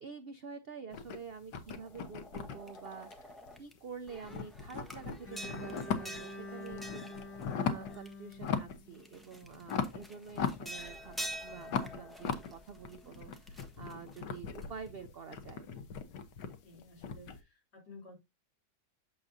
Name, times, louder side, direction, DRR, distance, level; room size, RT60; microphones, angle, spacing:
voice 1, 0.0-11.1 11.4-15.7, right 6 dB, 80° right, 0.5 m, -48 dB
sound 1, 0.9-3.8 4.1-6.3 6.7-8.0 8.3-8.9 9.2-11.2 11.6-17.4, left 7 dB, 80° left, 1.7 m, -38 dB
sound 2, 1.7-3.7 4.1-8.5 8.9-14.9, right 1 dB, ahead, 1.0 m, -48 dB
Bowed string instrument, 5.2-9.3, left 2 dB, 20° left, 0.3 m, -47 dB
voice 2, 16.6-18.1, left 2 dB, 65° left, 3.9 m, -53 dB
8.8 x 6.7 x 2.6 m
omnidirectional pair, 1.9 m